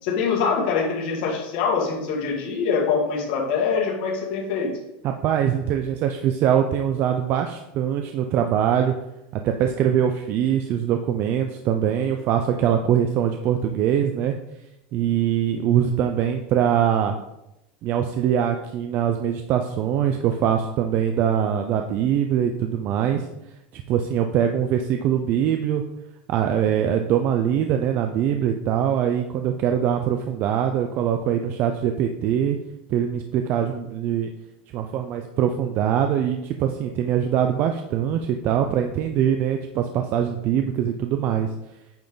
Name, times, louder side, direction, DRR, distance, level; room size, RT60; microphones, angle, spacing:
voice 1, 0.0-4.7, left 5 dB, 55° left, -2 dB, 2.2 m, -24 dB
voice 2, 5.0-8.9 9.3-14.4 14.9-17.2 17.8-23.3 23.7-25.8 26.3-32.6 32.9-34.3 34.7-41.5, right 9 dB, 35° right, 5 dB, 0.5 m, -23 dB
8.7 x 5.6 x 4.0 m, 0.89 s
supercardioid pair, 165°, 6 cm